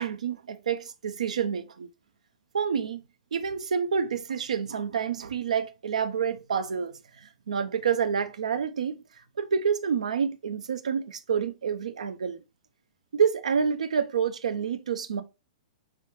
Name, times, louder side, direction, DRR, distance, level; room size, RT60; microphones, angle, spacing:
voice 1, 0.0-1.9 2.5-3.0 3.3-9.0 9.4-12.4 13.1-15.2, right 7 dB, 85° right, 0.4 m, -28 dB
3.2 x 2.3 x 2.9 m
hypercardioid pair, 125°, 4 cm